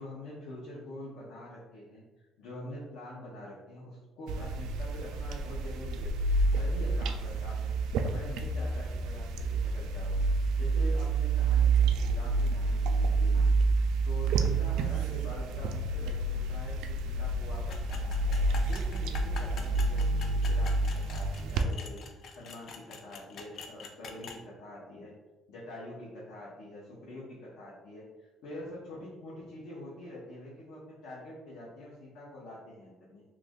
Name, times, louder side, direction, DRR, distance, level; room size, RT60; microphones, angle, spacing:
voice 1, 0.0-6.2 6.5-13.5 14.0-18.2 18.6-25.2 25.5-33.2, left 1 dB, 85° left, -6 dB, 0.8 m, -45 dB
sound 1, 4.3-21.6, right 3 dB, 90° right, 0.3 m, -28 dB
sound 2, 17.7-24.4, left 5 dB, 50° left, 0.3 m, -46 dB
3.1 x 2.4 x 3.5 m, 1.2 s
cardioid pair, 160°, 0 cm